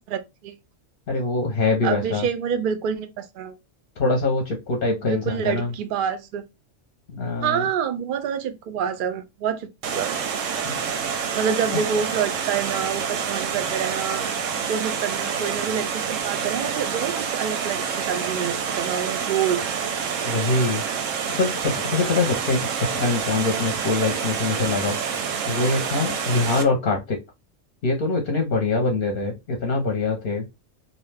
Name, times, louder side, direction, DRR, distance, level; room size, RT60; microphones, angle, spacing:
voice 1, 0.1-0.5 1.8-3.6 5.0-6.4 7.4-10.1 11.3-14.2 14.7-19.6, right 8 dB, 60° right, 0.5 m, -27 dB
voice 2, 1.1-2.3 4.0-5.7 7.1-7.6 10.6-10.8 11.7-11.8 20.2-20.8 21.4-25.0 25.5-27.2 27.8-30.5, left 3 dB, 55° left, 0.7 m, -24 dB
Water, 9.8-26.6, right 7 dB, 85° right, 1.0 m, -27 dB
2.6 x 2.1 x 3.2 m
omnidirectional pair, 1.3 m